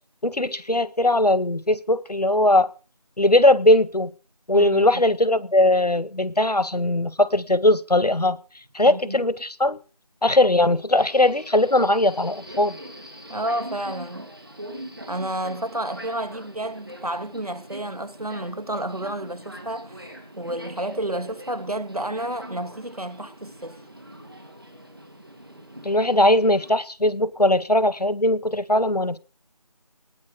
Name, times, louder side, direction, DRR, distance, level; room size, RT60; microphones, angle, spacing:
voice 1, 0.2-2.7 3.2-4.1 4.5-8.4 8.7-9.8 10.2-12.8 25.8-29.2, left 1 dB, 80° left, 1.8 m, -20 dB
voice 2, 4.5-5.0 8.8-9.2 13.3-14.3 15.1-23.8, right 1 dB, 70° right, 2.1 m, -31 dB
Subway metro underground, 11.0-26.7, right 1 dB, 35° right, 3.6 m, -42 dB
19.5 x 17.5 x 3.8 m
figure-of-eight pair, 180°, 20 cm